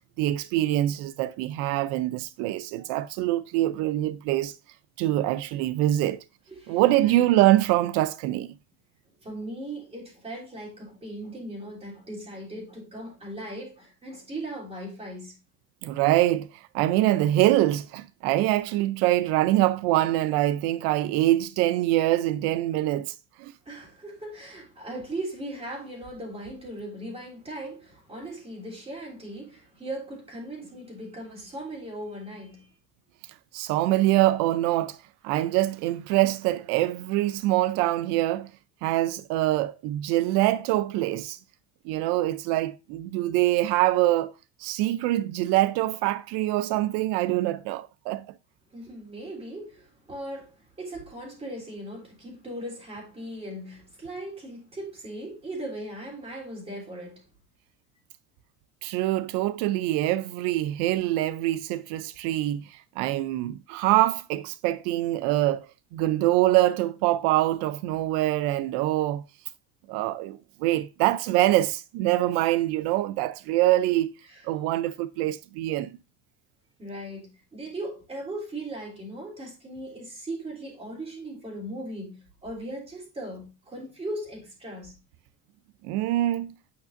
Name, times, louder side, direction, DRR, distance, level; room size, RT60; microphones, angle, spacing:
voice 1, 0.2-4.5 5.0-6.2 6.7-8.5 15.8-23.5 33.5-35.0 35.2-38.5 38.8-41.4 41.9-44.3 44.6-48.3 58.8-65.7 65.9-69.2 69.9-74.1 74.4-75.9 85.8-86.5, right 15 dB, 80° right, 0.5 m, -24 dB
voice 2, 6.5-7.3 9.2-15.3 23.6-32.6 48.7-57.2 74.3-74.4 76.8-84.9, right 1 dB, 15° right, 3.3 m, -38 dB
9.5 x 5.7 x 2.5 m
cardioid pair, 150°, 39 cm